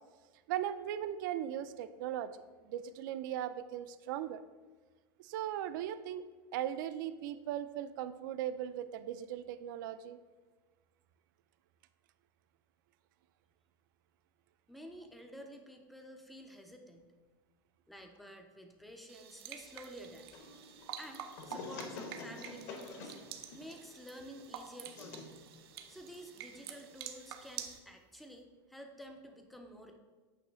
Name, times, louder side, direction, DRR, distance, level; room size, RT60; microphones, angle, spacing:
voice 1, 0.5-4.4 5.2-6.2 6.5-10.2, right 11 dB, 55° right, 13 dB, 0.4 m, -38 dB
voice 2, 14.7-17.1 17.9-20.3 21.0-23.2 23.5-25.3 25.9-30.0, equal, ahead, 4 dB, 0.5 m, -51 dB
sound 1, 19.1-27.8, right 9 dB, 90° right, 0.8 m, -48 dB
sound 2, 20.3-27.0, left 3 dB, 50° left, 1.1 m, -49 dB
9.1 x 3.2 x 6.2 m, 1.3 s
supercardioid pair, 180°, 13 cm